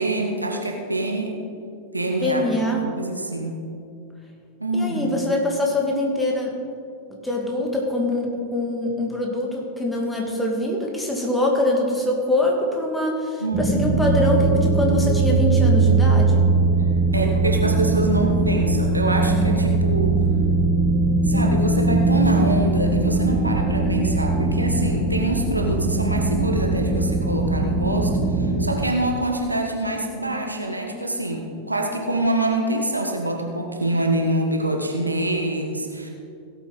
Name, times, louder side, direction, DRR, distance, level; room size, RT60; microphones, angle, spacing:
voice 1, 0.0-1.4 1.9-2.5 2.8-3.6 4.6-5.2 13.4-14.0 17.1-20.2 21.2-36.1, right 1 dB, 85° right, 2 dB, 1.4 m, -25 dB
voice 2, 2.2-2.9 4.7-6.5 7.1-16.5, left 1 dB, 5° left, -1 dB, 2.2 m, -24 dB
sound 1, 13.5-28.7, right 3 dB, 25° right, 2.7 m, -20 dB
17.0 x 8.3 x 4.2 m, 2.5 s
figure-of-eight pair, 90°, 0 cm